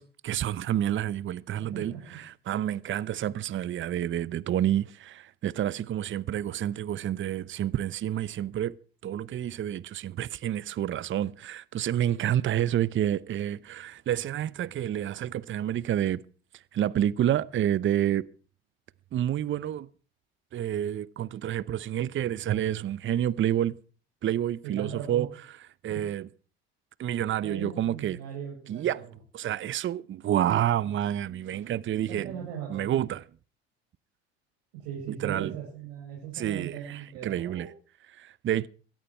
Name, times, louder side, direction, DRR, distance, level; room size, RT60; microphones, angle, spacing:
voice 1, 0.0-8.7 9.0-16.2 16.5-18.2 19.1-19.9 20.5-23.8 24.2-25.3 25.8-26.3 27.0-28.2 28.7-29.0 29.3-32.3 32.7-33.2 35.1-35.5 36.3-37.7 38.1-38.7, right 11 dB, 40° right, 0.8 m, -29 dB
voice 2, 1.5-2.0 12.0-12.2 24.6-25.3 25.9-26.0 27.4-29.0 32.1-32.9 34.8-37.7, right 8 dB, 75° right, 7.5 m, -39 dB
16.5 x 14.0 x 4.5 m
hypercardioid pair, 75°, 32 cm